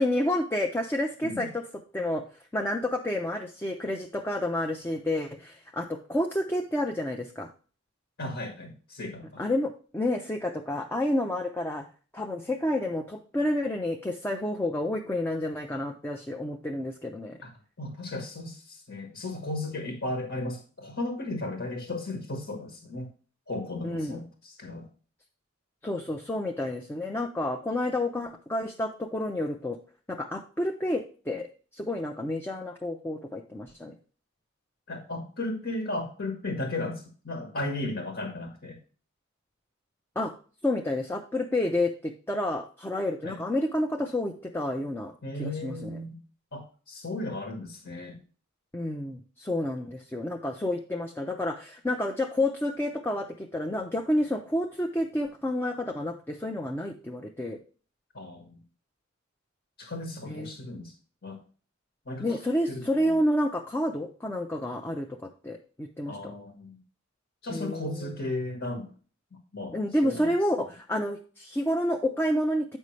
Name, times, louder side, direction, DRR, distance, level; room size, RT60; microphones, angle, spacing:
voice 1, 0.0-1.6 1.9-2.2 2.5-7.5 9.4-11.9 12.1-17.4 23.8-24.2 25.8-29.8 30.1-34.0 40.2-40.3 40.6-45.1 45.4-46.0 48.7-57.6 60.3-60.5 62.2-66.3 67.5-68.1 69.7-72.8, left 1 dB, 10° left, 2 dB, 0.5 m, -29 dB
voice 2, 8.2-9.4 17.4-17.5 17.8-23.1 23.5-24.9 34.9-38.8 43.2-43.4 45.2-46.2 46.5-48.2 58.1-58.6 59.8-60.9 61.2-61.4 62.1-62.4 62.7-63.2 66.1-66.8 67.4-68.9 69.5-70.3, left 2 dB, 60° left, 3 dB, 1.3 m, -35 dB
8.3 x 5.4 x 3.1 m, 0.39 s
head